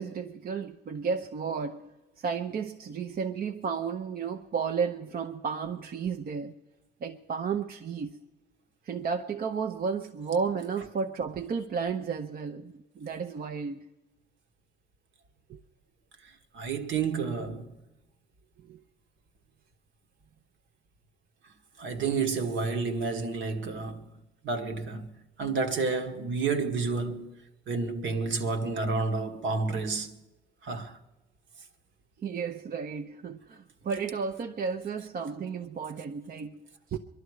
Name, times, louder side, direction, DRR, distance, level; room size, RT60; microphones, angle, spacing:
voice 1, 0.0-6.5 7.0-8.2 8.9-13.9 15.5-15.6 18.7-18.8 32.2-37.0, right 6 dB, 50° right, 0.7 m, -33 dB
voice 2, 16.5-17.7 21.8-24.2 24.4-25.1 25.4-27.4 27.7-30.1 30.6-31.0, right 4 dB, 70° right, 1.5 m, -30 dB
23.5 x 11.5 x 4.8 m
cardioid pair, 90°, 20 cm